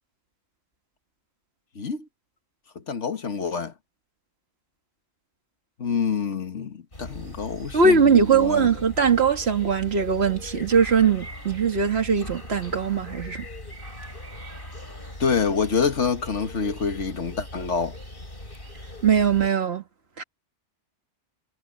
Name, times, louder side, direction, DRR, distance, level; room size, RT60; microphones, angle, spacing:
voice 1, 1.8-2.1 2.8-3.7 5.8-8.7 15.2-18.0, left 5 dB, 70° left, 1.9 m, -27 dB
sound 1, 6.9-19.5, left 1 dB, 45° left, 7.3 m, -40 dB
voice 2, 7.7-13.4 19.0-19.8 20.2-20.3, right 5 dB, 60° right, 2.1 m, -21 dB
omnidirectional pair, 1.3 m